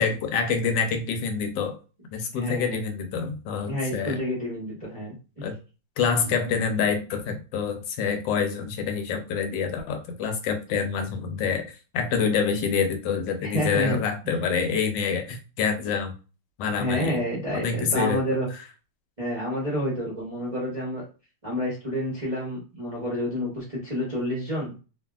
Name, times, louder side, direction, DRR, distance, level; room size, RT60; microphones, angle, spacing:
voice 1, 0.0-1.8 2.1-4.2 5.4-5.5 6.0-16.1 16.6-17.2 17.5-18.2, left 6 dB, 75° left, 6 dB, 1.2 m, -26 dB
voice 2, 2.3-2.8 3.7-5.1 13.4-14.0 16.8-18.5 19.2-21.0 21.4-24.7, equal, 35° right, -6 dB, 0.6 m, -29 dB
2.7 x 2.5 x 2.3 m, 0.33 s
omnidirectional pair, 2.1 m